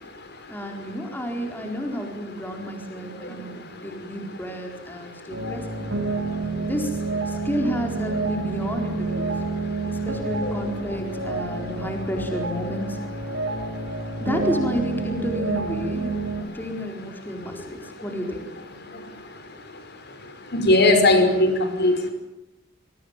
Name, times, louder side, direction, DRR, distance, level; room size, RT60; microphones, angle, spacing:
voice 1, 0.5-5.8 6.6-9.3 9.9-13.0 14.2-18.4, equal, 10° left, 3 dB, 4.2 m, -31 dB
sound 1, 5.3-16.4, right 3 dB, 80° right, 7.3 m, -29 dB
voice 2, 20.5-21.9, left 2 dB, 55° left, 8 dB, 5.6 m, -18 dB
26.5 x 23.5 x 7.4 m, 0.89 s
head